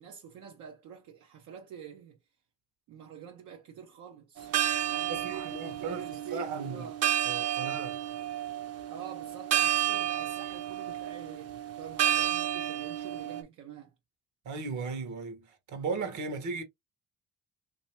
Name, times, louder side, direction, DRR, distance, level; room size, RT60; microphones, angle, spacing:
voice 1, 0.0-2.2 2.9-4.5 4.9-7.0 8.9-13.9, right 8 dB, 90° right, 0.8 m, -47 dB
sound 1, 4.4-13.4, right 11 dB, 55° right, 0.7 m, -31 dB
voice 2, 5.1-6.1 6.3-6.9 7.2-8.0 14.4-16.6, right 4 dB, 75° right, 1.3 m, -36 dB
3.3 x 2.9 x 2.9 m
cardioid pair, 90°, 30 cm